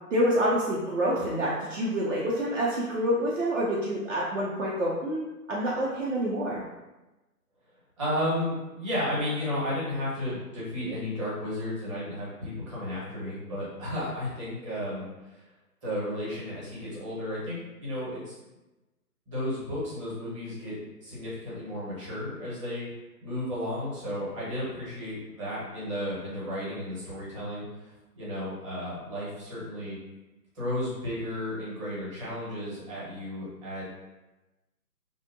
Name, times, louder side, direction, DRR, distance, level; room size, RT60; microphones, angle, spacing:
voice 1, 0.1-6.6, equal, 55° right, -6 dB, 0.5 m, -27 dB
voice 2, 8.0-15.4 15.8-18.4 19.3-20.7 21.0-22.9 23.2-30.0 30.5-33.8, left 1 dB, 20° right, -9 dB, 0.8 m, -33 dB
2.6 x 2.0 x 2.5 m, 1.1 s
figure-of-eight pair, 135°, 48 cm